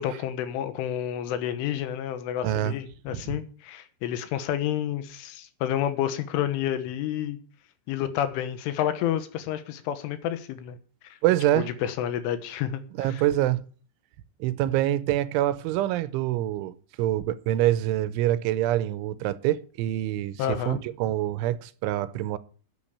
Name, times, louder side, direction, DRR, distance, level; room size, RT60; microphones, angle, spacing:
voice 1, 0.0-7.4 7.9-10.8 11.6-13.2 20.4-20.8, left 10 dB, 85° left, 3.6 m, -29 dB
voice 2, 2.4-2.8 3.1-3.4 11.2-11.7 13.0-13.6 14.4-22.4, right 13 dB, 80° right, 3.1 m, -26 dB
10.5 x 8.9 x 8.5 m
omnidirectional pair, 5.6 m